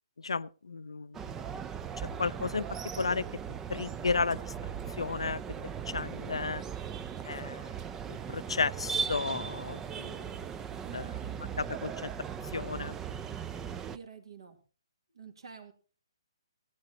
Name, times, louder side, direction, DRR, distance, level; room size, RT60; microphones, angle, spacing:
voice 1, 0.2-1.3 2.2-2.6 3.0-3.2 3.7-4.5 5.0-5.4 5.9-6.6 7.2-7.7 8.1-10.4 10.9-11.1 11.4-12.1 12.5-13.0, left 4 dB, 80° left, 0.5 m, -33 dB
sound 1, 1.1-14.0, right 7 dB, 15° right, 0.5 m, -38 dB
voice 2, 13.9-14.6 15.1-15.7, right 6 dB, 65° right, 2.7 m, -51 dB
17.0 x 9.4 x 4.2 m
hypercardioid pair, 140°, 3 cm